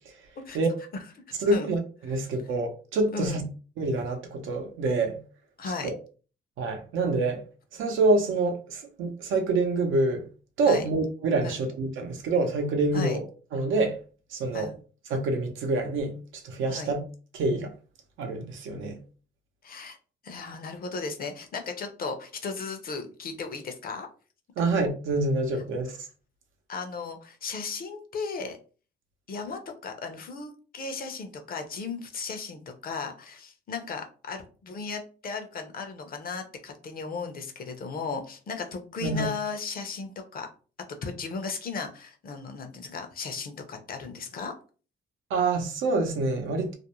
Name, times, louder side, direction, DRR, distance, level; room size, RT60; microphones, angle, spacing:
voice 1, 1.4-3.4 3.8-5.2 5.8-5.9 6.6-7.4 7.7-10.2 10.6-13.2 13.5-14.0 14.3-14.7 15.1-16.1 16.4-17.0 17.3-17.7 18.2-19.0 24.6-26.0 39.0-39.3 45.3-46.7, right 2 dB, 80° right, 0.7 m, -26 dB
voice 2, 5.6-5.9 10.7-10.9 11.4-11.6 12.9-13.2 14.5-14.7 16.7-16.9 19.6-20.0 20.2-24.1 24.6-24.7 26.7-28.6 29.3-40.5 41.0-44.5, left 4 dB, 50° left, 0.6 m, -36 dB
2.5 x 2.1 x 2.9 m
cardioid pair, 90°, 20 cm